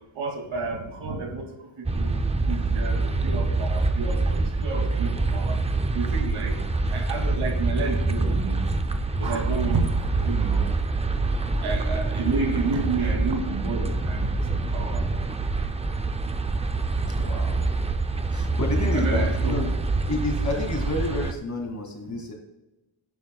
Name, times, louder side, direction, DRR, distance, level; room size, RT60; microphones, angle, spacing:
voice 1, 0.1-1.5 1.8-2.2 2.5-5.6 5.9-6.6 6.9-8.6 9.2-10.7 11.6-15.0 17.2-17.3 18.4-18.5 18.8-19.6, right 4 dB, 75° right, 3 dB, 2.5 m, -30 dB
sound 1, 1.8-21.3, right 3 dB, 15° right, 0.4 m, -25 dB
voice 2, 17.2-17.7 18.3-19.7 20.1-22.3, left 2 dB, 35° left, 2 dB, 2.3 m, -30 dB
18.0 x 9.7 x 2.3 m, 0.99 s
wide cardioid pair, 165°, 49 cm